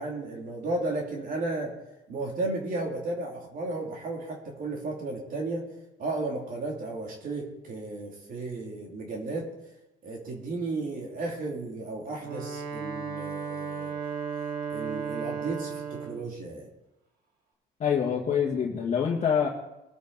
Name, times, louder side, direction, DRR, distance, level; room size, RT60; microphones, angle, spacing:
voice 1, 0.0-1.7 2.1-5.6 6.0-9.5 10.0-13.9 14.7-16.7, right 2 dB, 55° right, -1 dB, 2.8 m, -34 dB
Wind instrument woodwind instrument, 12.1-16.3, right 6 dB, 70° right, 3.5 m, -35 dB
voice 2, 17.8-19.5, left 7 dB, 40° left, -3 dB, 1.7 m, -25 dB
20.5 x 8.3 x 4.0 m, 0.94 s
cardioid pair, 110°, 17 cm